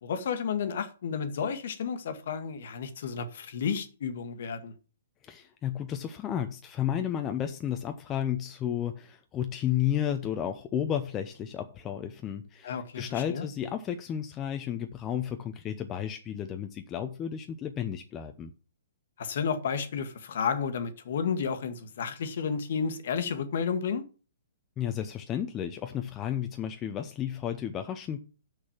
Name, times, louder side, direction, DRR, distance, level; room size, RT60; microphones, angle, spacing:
voice 1, 0.0-4.7 12.6-13.5 19.2-24.0, left 6 dB, 50° left, 1.3 m, -32 dB
voice 2, 5.2-18.5 24.8-28.2, left 10 dB, 20° left, 0.7 m, -32 dB
6.5 x 6.3 x 7.2 m
figure-of-eight pair, 120°, 0 cm